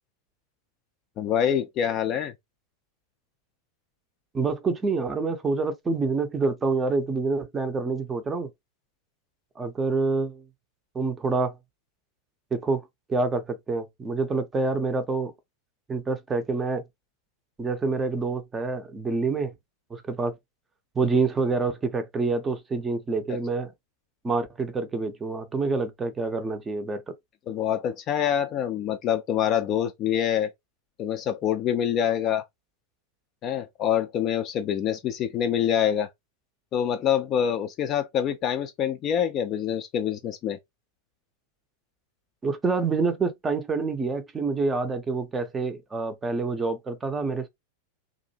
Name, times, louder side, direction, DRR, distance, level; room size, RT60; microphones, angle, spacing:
voice 1, 1.2-2.3 27.5-30.5 31.0-32.4 33.4-36.1 36.7-40.6, left 9 dB, 35° left, 0.4 m, -26 dB
voice 2, 4.3-8.5 9.6-10.4 10.9-11.5 12.5-15.3 15.9-16.8 17.6-19.5 19.9-20.4 21.0-23.7 24.2-27.1 42.4-47.5, right 3 dB, 15° right, 0.5 m, -27 dB
2.5 x 2.1 x 2.7 m
figure-of-eight pair, 90°, 0 cm